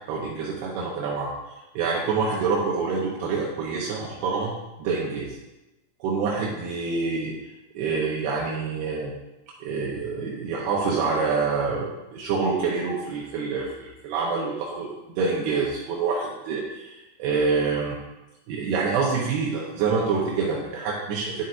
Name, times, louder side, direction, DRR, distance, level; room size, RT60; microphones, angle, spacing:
voice 1, 0.1-1.3 1.8-5.4 6.0-7.4 7.7-9.1 9.6-18.0 18.5-21.4, right 4 dB, 75° right, -4 dB, 2.5 m, -26 dB
9.5 x 8.4 x 2.6 m, 1.0 s
omnidirectional pair, 5.5 m